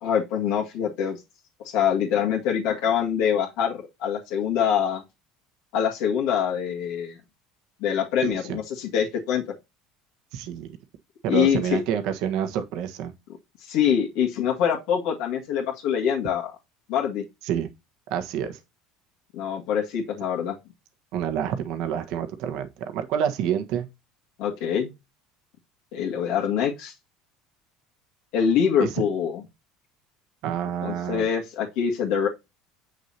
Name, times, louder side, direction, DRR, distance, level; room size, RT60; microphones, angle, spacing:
voice 1, 0.0-1.2 1.6-5.0 5.7-7.2 7.8-9.4 11.3-11.8 13.6-16.5 16.9-17.2 19.3-20.6 24.4-24.9 25.9-26.9 28.3-29.4 30.8-32.3, left 8 dB, 65° left, 2.0 m, -24 dB
voice 2, 8.2-8.6 10.3-10.7 11.2-13.1 17.4-17.7 18.1-18.6 21.1-23.9 28.8-29.0 30.4-31.3, right 9 dB, 60° right, 1.3 m, -28 dB
7.6 x 6.3 x 2.8 m
cardioid pair, 155°, 0 cm